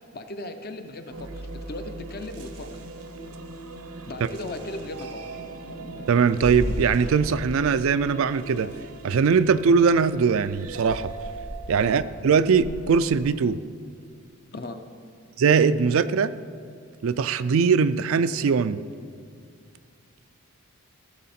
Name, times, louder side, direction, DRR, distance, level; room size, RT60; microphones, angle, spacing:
voice 1, 0.1-2.7 4.0-5.2 11.8-12.0 14.5-14.8, left 2 dB, 45° left, 7 dB, 0.7 m, -37 dB
sound 1, 1.1-13.2, right 3 dB, 80° right, 0.8 m, -41 dB
voice 2, 6.1-8.7 9.0-11.1 11.7-13.6 15.4-16.3 17.0-18.8, right 5 dB, 65° right, 13 dB, 0.4 m, -21 dB
sound 2, 6.4-8.3 8.6-8.8 9.3-9.4 9.7-9.9 10.2-13.2, equal, 60° left, 1.0 m, -36 dB
15.0 x 7.1 x 4.3 m, 2.2 s
head